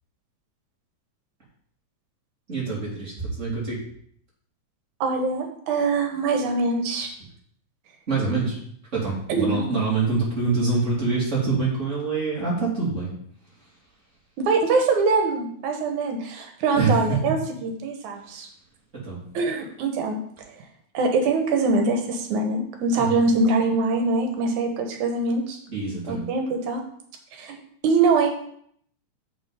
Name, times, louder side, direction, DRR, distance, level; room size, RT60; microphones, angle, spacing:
voice 1, 2.5-3.8 8.1-8.6 8.9-13.1 16.7-17.2 18.2-18.3 18.9-19.2 22.9-23.2 25.7-26.2, right 4 dB, 25° right, -6 dB, 3.0 m, -25 dB
voice 2, 5.0-7.1 9.3-9.5 14.4-18.5 19.3-20.2 20.9-25.6 26.1-26.8 27.4-27.6 27.8-28.4, right 3 dB, 80° right, 3 dB, 2.6 m, -23 dB
6.5 x 6.1 x 5.0 m, 0.65 s
omnidirectional pair, 3.4 m